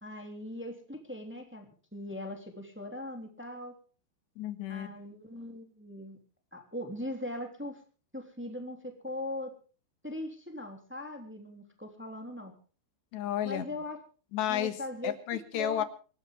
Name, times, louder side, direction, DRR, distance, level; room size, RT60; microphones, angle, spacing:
voice 1, 0.0-3.8 4.7-6.2 6.5-7.8 8.1-9.5 10.0-12.5 13.4-14.0 14.5-15.1 15.5-15.8, left 1 dB, 5° right, 3 dB, 1.6 m, -40 dB
voice 2, 4.4-4.9 13.1-13.7 14.3-14.8 15.0-15.8, left 11 dB, 65° left, 9 dB, 3.4 m, -32 dB
26.5 x 13.0 x 3.6 m, 0.39 s
omnidirectional pair, 5.8 m